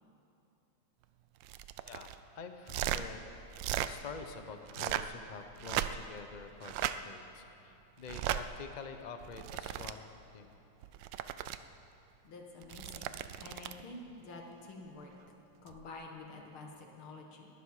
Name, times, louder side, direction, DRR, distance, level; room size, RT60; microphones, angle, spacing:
sound 1, 1.4-2.2 2.6-3.0 3.5-3.9 4.6-5.2 5.6-6.2 6.6-7.0 8.1-8.4 9.2-9.9 10.8-11.6 12.6-13.8 15.7-15.9, right 12 dB, 75° right, 1.2 m, -36 dB
voice 1, 1.9-3.3 3.9-10.1 10.3-10.5, left 5 dB, 60° left, 7 dB, 0.4 m, -47 dB
voice 2, 12.2-15.1 15.6-17.5, left 2 dB, 85° left, 1 dB, 2.5 m, -49 dB
20.5 x 12.5 x 4.9 m, 2.9 s
omnidirectional pair, 2.2 m